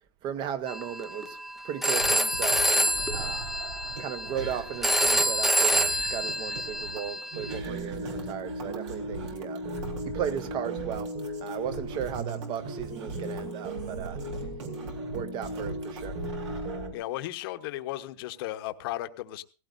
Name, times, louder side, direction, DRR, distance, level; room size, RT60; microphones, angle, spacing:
voice 1, 0.2-1.4 1.6-3.4 4.0-9.6 10.0-11.1 11.4-14.2 15.1-16.2, right 9 dB, 30° right, 1.0 m, -36 dB
Telephone, 0.7-7.6, equal, ahead, 0.6 m, -27 dB
sound 1, 2.0-16.9, right 3 dB, 75° right, 4.2 m, -41 dB
sound 2, 7.3-16.9, right 1 dB, 50° right, 5.9 m, -37 dB
voice 2, 16.9-19.4, left 15 dB, 55° left, 1.0 m, -35 dB
17.5 x 16.0 x 2.6 m
supercardioid pair, 145°, 15 cm